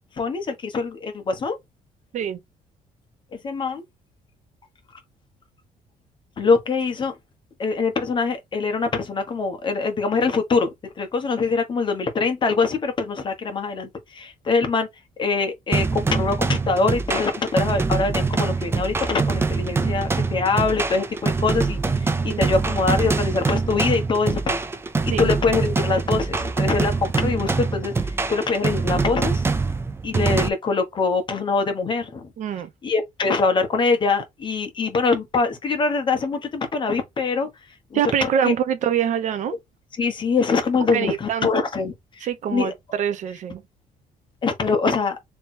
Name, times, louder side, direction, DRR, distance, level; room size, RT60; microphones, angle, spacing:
voice 1, 0.1-1.6 3.3-3.8 6.4-7.2 7.6-14.9 15.2-24.6 25.0-29.4 30.0-32.3 32.8-38.5 40.0-42.7 44.4-45.2, left 4 dB, 35° left, 1.2 m, -24 dB
sound 1, 15.7-30.5, right 4 dB, 15° right, 0.5 m, -24 dB
voice 2, 32.4-32.7 37.9-39.6 40.9-41.6 42.2-43.6, right 9 dB, 55° right, 0.8 m, -25 dB
3.4 x 3.0 x 4.2 m
cardioid pair, 140°, 15 cm